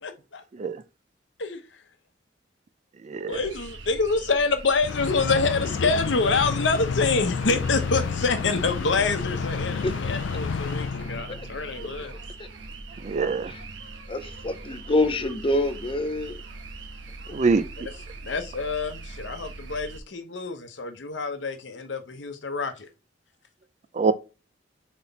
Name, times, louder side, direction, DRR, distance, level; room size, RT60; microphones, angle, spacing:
voice 1, 0.0-0.4 1.4-1.8 3.3-12.1 18.2-22.9, left 4 dB, 75° left, 0.9 m, -26 dB
voice 2, 3.0-3.4 13.0-13.5 17.3-17.9 23.9-24.1, right 4 dB, 40° right, 0.4 m, -24 dB
sound 1, 3.3-20.0, right 3 dB, 90° right, 1.1 m, -41 dB
sound 2, 4.8-11.6, left 5 dB, 90° left, 0.4 m, -30 dB
voice 3, 14.1-16.4 17.3-17.4, left 1 dB, 30° left, 0.6 m, -26 dB
5.9 x 4.3 x 4.0 m
head